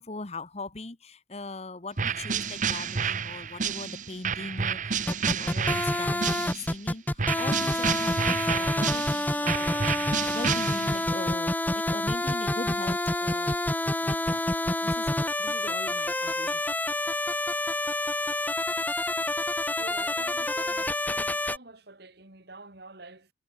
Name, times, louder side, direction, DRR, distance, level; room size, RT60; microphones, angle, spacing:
voice 1, 0.0-13.6 14.0-14.4 14.8-15.1 15.4-16.6, left 2 dB, 35° left, 1.2 m, -40 dB
sound 1, 2.0-6.8 7.2-11.2, right 6 dB, 40° right, 0.9 m, -30 dB
sound 2, 5.1-21.6, left 1 dB, 10° left, 0.7 m, -28 dB
voice 2, 19.8-23.3, right 2 dB, 60° right, 3.0 m, -47 dB
head